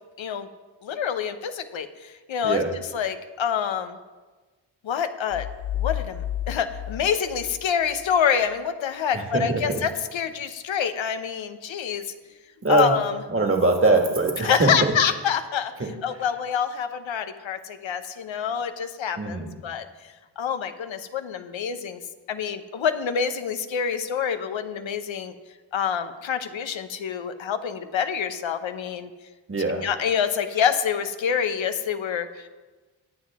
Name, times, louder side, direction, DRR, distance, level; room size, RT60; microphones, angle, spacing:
voice 1, 0.8-2.6 2.9-4.0 4.8-5.5 5.7-12.1 12.7-13.2 14.4-15.7 16.0-19.9 20.4-22.0 22.3-25.3 25.7-29.1 29.8-32.5, left 7 dB, 85° left, 9 dB, 0.9 m, -26 dB
sound 1, 5.3-8.1, left 12 dB, 55° left, 0.5 m, -32 dB
voice 2, 9.1-9.6 12.6-13.0 13.3-14.7 15.8-15.9 19.2-19.5 29.5-29.8, right 2 dB, 30° right, 3 dB, 1.8 m, -22 dB
20.0 x 7.6 x 3.6 m, 1.3 s
wide cardioid pair, 85°, 45 cm